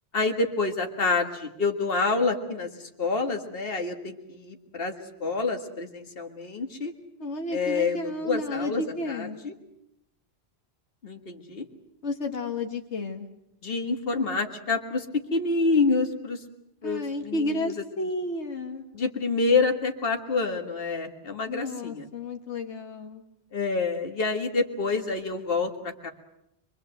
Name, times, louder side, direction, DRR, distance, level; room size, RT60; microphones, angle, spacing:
voice 1, 0.1-6.9 7.5-9.5 11.0-11.7 13.6-16.4 16.8-17.7 18.9-22.1 23.5-26.1, left 4 dB, 55° left, 4 dB, 2.1 m, -27 dB
voice 2, 7.2-9.4 12.0-13.3 16.8-18.8 21.5-23.2, left 2 dB, 80° left, 4 dB, 1.9 m, -32 dB
24.5 x 24.0 x 7.9 m, 0.81 s
omnidirectional pair, 1.1 m